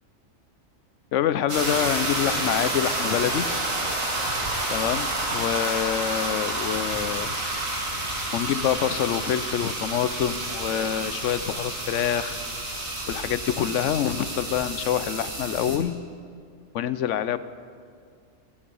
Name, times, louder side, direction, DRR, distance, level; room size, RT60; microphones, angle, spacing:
voice 1, 1.1-3.5 4.7-7.3 8.3-12.4 13.1-15.9 16.7-17.4, left 10 dB, 70° left, 14 dB, 0.9 m, -26 dB
sound 1, 1.5-15.8, right 1 dB, 90° right, 2.9 m, -29 dB
24.5 x 8.9 x 5.4 m, 2.1 s
omnidirectional pair, 1.3 m